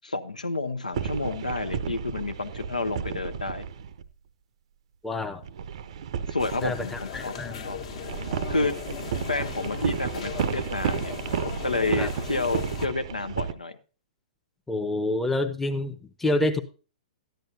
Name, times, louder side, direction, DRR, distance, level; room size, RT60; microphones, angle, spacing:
voice 1, 0.0-3.6 6.3-7.8 8.5-8.7 9.3-11.1 11.4-13.8, left 3 dB, 80° left, 11 dB, 0.7 m, -30 dB
sound 1, 0.9-4.1 5.4-13.5, right 8 dB, 50° right, 0.6 m, -32 dB
voice 2, 5.0-5.4 6.6-7.7 12.0-12.1 14.7-16.6, left 2 dB, 5° left, 6 dB, 0.8 m, -28 dB
sound 2, 6.4-12.9, left 8 dB, 50° left, 1.3 m, -38 dB
13.5 x 10.5 x 2.6 m, 0.36 s
figure-of-eight pair, 115°, 4 cm